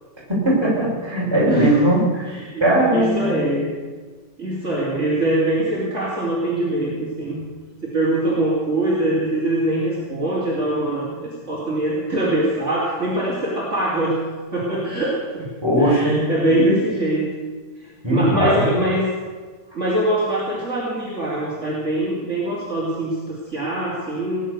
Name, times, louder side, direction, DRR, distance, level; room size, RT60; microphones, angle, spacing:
voice 1, 0.3-2.3 2.6-3.4 15.6-16.8 18.0-18.8, right 1 dB, 15° right, -6 dB, 5.7 m, -19 dB
voice 2, 1.5-1.8 2.3-3.7 4.4-7.4 7.8-14.2 14.5-15.5 15.8-17.3 17.8-19.1 19.7-24.4, right 1 dB, 45° right, -6 dB, 3.4 m, -23 dB
19.0 x 10.5 x 6.7 m, 1.4 s
omnidirectional pair, 1.8 m